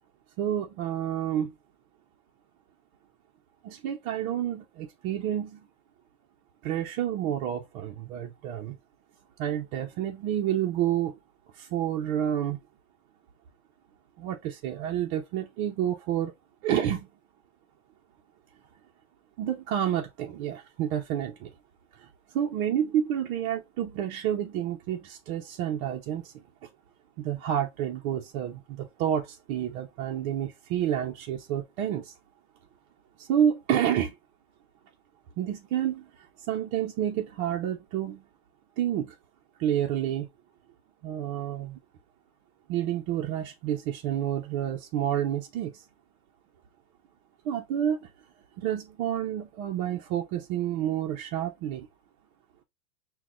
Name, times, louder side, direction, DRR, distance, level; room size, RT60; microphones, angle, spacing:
voice 1, 0.4-1.5 3.6-5.7 6.6-8.8 9.4-11.2 11.5-12.6 14.2-16.3 16.6-17.1 19.4-21.5 22.0-26.4 27.2-32.1 33.2-34.2 35.4-36.1 36.5-38.2 38.8-39.2 39.6-40.3 41.0-41.8 42.7-45.8 47.4-48.1 48.6-51.9, right 10 dB, 45° right, 0.7 m, -29 dB
5.8 x 2.3 x 2.4 m
supercardioid pair, 135°, 42 cm